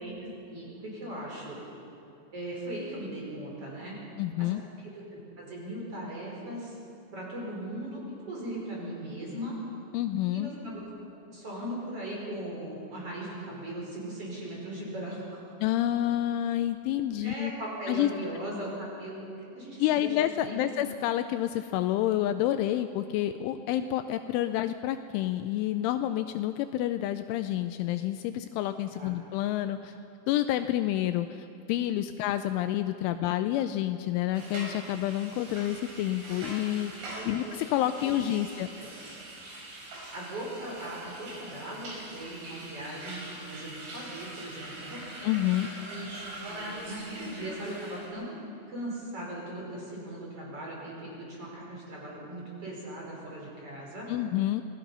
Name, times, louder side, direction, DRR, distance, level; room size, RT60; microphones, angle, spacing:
voice 1, 0.0-1.6 2.3-4.0 4.4-4.5 4.8-6.8 7.1-9.6 10.3-15.5 17.2-20.6 28.9-29.1 33.1-33.2 37.1-37.4 38.0-38.1 38.8-38.9 40.1-45.0 45.5-46.2 46.5-48.3 48.7-54.1, right 1 dB, 30° right, -4 dB, 5.4 m, -39 dB
voice 2, 4.2-4.6 9.9-10.5 15.6-17.5 17.9-18.1 19.8-29.9 30.3-38.7 45.2-45.7 54.1-54.6, left 13 dB, 85° left, 10 dB, 2.9 m, -29 dB
sound 1, 34.3-48.1, right 1 dB, 70° right, 7.1 m, -43 dB
27.5 x 19.0 x 5.6 m, 2.7 s
omnidirectional pair, 5.7 m